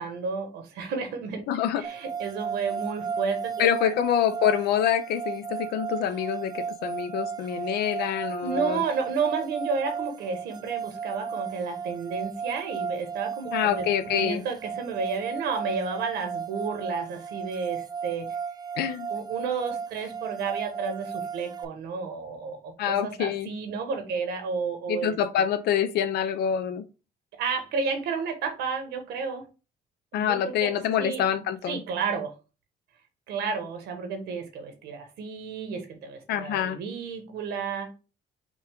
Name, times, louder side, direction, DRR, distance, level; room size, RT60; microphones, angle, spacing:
voice 1, 0.0-1.4 1.8-3.9 8.4-13.8 14.1-18.3 19.1-25.1 27.3-29.4 30.2-31.4 31.7-32.3 33.3-37.9, right 5 dB, 80° right, 1.3 m, -31 dB
voice 2, 1.5-1.8 3.6-8.8 13.5-14.4 18.8-19.1 22.8-23.5 24.9-26.8 30.1-31.8 36.3-36.8, left 9 dB, 75° left, 0.6 m, -26 dB
sound 1, 1.8-21.6, right 6 dB, 25° right, 0.5 m, -35 dB
5.2 x 2.4 x 3.6 m
cardioid pair, 110°, 17 cm